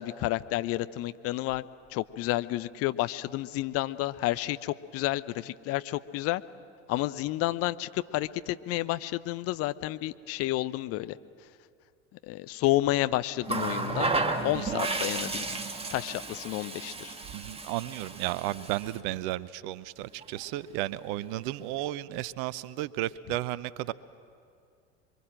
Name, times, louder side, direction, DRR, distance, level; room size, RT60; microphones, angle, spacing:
voice 1, 0.0-1.6 1.9-6.4 6.9-11.2 12.3-14.1 14.4-15.6 15.9-17.1, left 16 dB, 40° left, 13 dB, 0.8 m, -30 dB
Water tap faucet, 13.4-19.0 20.2-20.4, right 3 dB, 15° right, 2.0 m, -33 dB
voice 2, 14.5-14.8 17.3-23.9, right 15 dB, 50° right, 20 dB, 0.8 m, -33 dB
27.0 x 23.5 x 7.6 m, 2.3 s
figure-of-eight pair, 70°, 36 cm